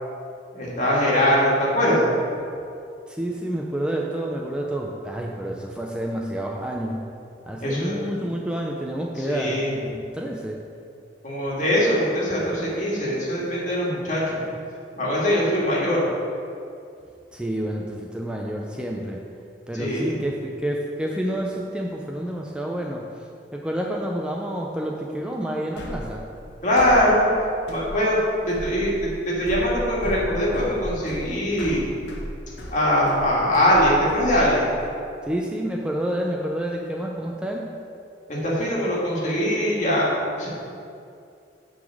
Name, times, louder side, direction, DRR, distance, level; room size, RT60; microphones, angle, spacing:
voice 1, 0.5-2.1 7.6-8.0 9.2-9.7 11.2-14.4 15.0-16.1 19.7-20.2 26.6-27.3 27.7-28.2 28.5-31.9 32.7-34.7 38.3-40.5, equal, 45° left, -5 dB, 2.1 m, -22 dB
voice 2, 3.1-7.0 7.5-10.6 17.3-19.2 19.7-20.4 20.6-23.1 23.5-26.3 35.3-37.8, right 1 dB, 5° right, -1 dB, 0.5 m, -29 dB
sound 1, 25.8-34.9, equal, 70° left, 1.0 m, -35 dB
9.1 x 3.9 x 6.4 m, 2.5 s
head